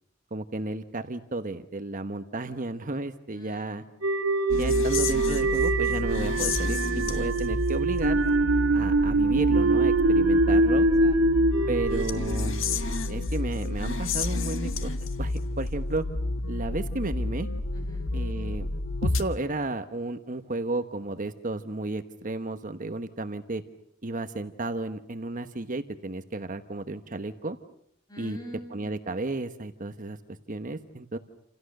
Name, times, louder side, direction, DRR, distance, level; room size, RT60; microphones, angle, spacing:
voice 1, 0.3-3.8 4.6-8.2 8.7-10.9 11.7-12.6 13.1-14.9 15.2-16.0 16.5-17.5 18.1-18.7 19.0-23.6 24.0-27.6 28.2-28.4 28.7-31.2, right 2 dB, 40° right, 8 dB, 1.2 m, -33 dB
voice 2, 3.3-4.0 10.8-11.4 17.7-18.1 28.1-28.9, equal, 20° left, 4 dB, 7.4 m, -46 dB
sound 1, 4.0-13.2, right 2 dB, 85° right, 2.8 m, -24 dB
sound 2, 4.5-19.2, left 2 dB, 70° left, 1.7 m, -30 dB
29.0 x 28.5 x 6.6 m, 0.71 s
head